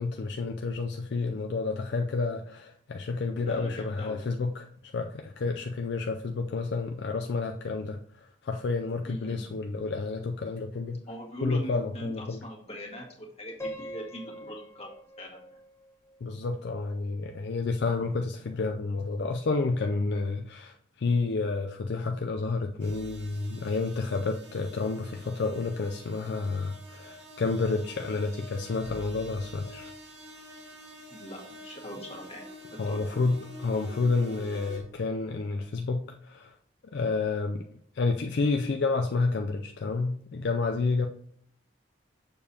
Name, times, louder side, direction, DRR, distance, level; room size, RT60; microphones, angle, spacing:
voice 1, 0.0-11.0 11.4-12.4 16.2-29.9 32.8-36.5 36.9-37.6 37.9-41.1, left 3 dB, 60° left, 0.4 m, -30 dB
voice 2, 3.3-4.2 9.1-9.4 11.1-14.9 15.2-15.5 31.1-32.4 32.7-33.0, equal, 35° left, 1.7 m, -41 dB
Piano, 13.6-16.6, equal, 15° left, 0.9 m, -43 dB
sound 1, 22.8-34.8, equal, 85° right, 2.0 m, -47 dB
6.8 x 6.7 x 2.8 m
head